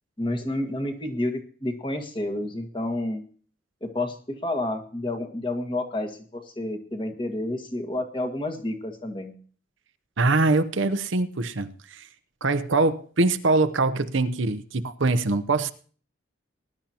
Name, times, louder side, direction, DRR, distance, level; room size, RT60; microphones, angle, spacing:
voice 1, 0.2-3.2 3.8-9.3, left 1 dB, 25° left, 3 dB, 1.7 m, -30 dB
voice 2, 10.2-12.1 12.4-15.7, right 3 dB, 75° right, 11 dB, 0.8 m, -23 dB
20.0 x 12.0 x 2.9 m, 0.43 s
head